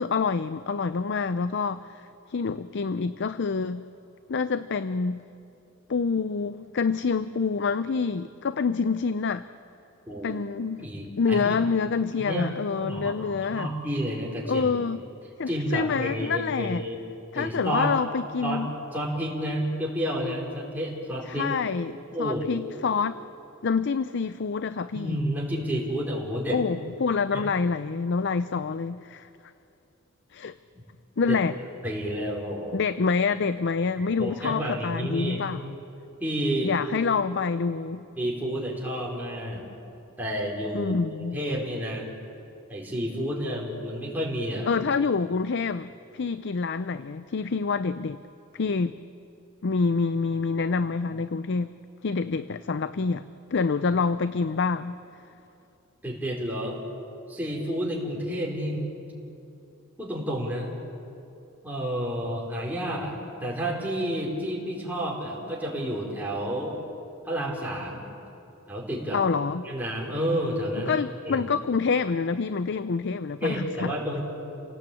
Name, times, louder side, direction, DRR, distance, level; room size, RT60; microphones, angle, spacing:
voice 1, 0.0-3.8 4.3-5.2 5.9-9.4 10.2-10.9 11.2-13.7 14.5-15.0 15.4-16.8 17.3-18.7 21.3-21.9 22.2-23.2 23.6-25.2 26.5-29.3 30.3-30.5 31.2-31.6 32.7-35.7 36.6-38.0 40.7-41.4 44.7-48.2 48.5-49.0 49.6-51.7 52.0-53.2 53.5-55.0 69.1-69.7 70.8-73.9, left 5 dB, 60° left, 13 dB, 0.5 m, -27 dB
voice 2, 10.0-10.4 10.8-11.6 12.2-14.7 15.5-17.0 17.3-17.9 18.4-18.6 18.9-21.6 22.1-22.5 24.9-26.6 27.3-27.4 30.7-30.8 31.3-31.4 31.8-32.8 34.0-35.4 36.2-36.7 38.2-39.6 40.2-40.9 41.3-42.1 42.7-44.8 56.0-56.8 57.3-58.9 60.0-60.7 61.6-66.8 67.2-68.0 68.7-69.2 69.6-71.0 71.3-71.5 73.4-74.2, equal, 10° right, -4 dB, 4.5 m, -30 dB
29.5 x 18.0 x 8.5 m, 2.8 s
head